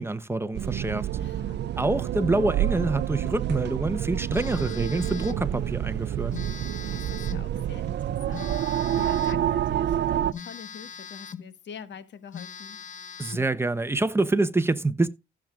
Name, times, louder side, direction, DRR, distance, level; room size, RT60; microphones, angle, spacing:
voice 1, 0.0-1.1 1.8-6.3 13.2-15.1, right 2 dB, 10° right, 0.9 m, -26 dB
sound 1, 0.5-10.3, right 11 dB, 60° right, 0.5 m, -28 dB
voice 2, 1.2-1.7 6.9-12.8, left 7 dB, 65° left, 1.4 m, -45 dB
Telephone, 4.3-5.5 6.3-7.5 8.3-9.5 10.3-11.5 11.9-12.0 12.3-13.5, left 7 dB, 40° left, 0.9 m, -41 dB
15.5 x 7.5 x 2.4 m
cardioid pair, 90°, 20 cm